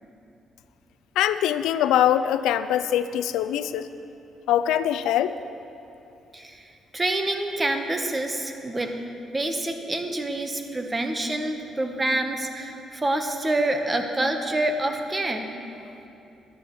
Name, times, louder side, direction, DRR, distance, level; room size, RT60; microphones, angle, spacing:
voice 1, 1.2-3.9 4.5-5.3, left 11 dB, 90° left, 12 dB, 0.3 m, -23 dB
voice 2, 6.3-9.0 9.3-15.5, right 1 dB, 20° right, 5 dB, 1.0 m, -27 dB
13.5 x 11.5 x 3.1 m, 2.8 s
cardioid pair, 90°, 0 cm